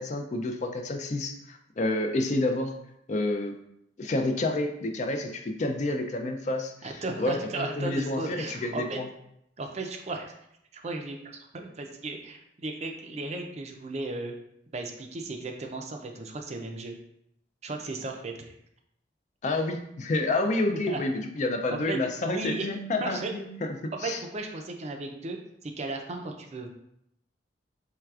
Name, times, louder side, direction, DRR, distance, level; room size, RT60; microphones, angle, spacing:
voice 1, 0.0-2.7 3.1-3.5 4.0-6.9 7.2-9.1 19.4-23.5 23.8-24.2, left 2 dB, 40° left, 5 dB, 0.4 m, -29 dB
voice 2, 6.8-9.0 9.6-10.3 10.7-11.2 11.5-14.4 14.7-17.0 17.6-18.5 20.9-21.0 21.7-22.7 23.0-23.3 23.9-26.7, right 3 dB, 35° right, 3 dB, 0.4 m, -35 dB
4.5 x 3.3 x 2.4 m, 0.76 s
head